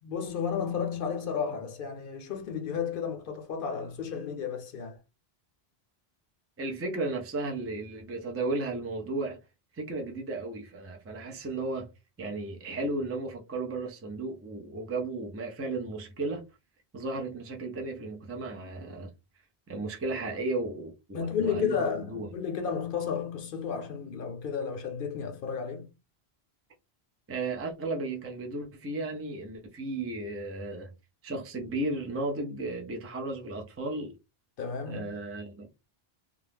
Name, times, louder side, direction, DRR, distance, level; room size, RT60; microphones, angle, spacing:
voice 1, 0.0-5.0 21.1-25.9 34.6-35.1, left 6 dB, 65° left, 0.7 m, -32 dB
voice 2, 6.6-9.4 9.7-11.9 12.2-16.4 16.9-19.1 19.7-22.3 27.3-30.9 31.2-34.2 34.9-35.7, right 2 dB, 25° right, 0.3 m, -34 dB
2.3 x 2.0 x 3.3 m
omnidirectional pair, 1.0 m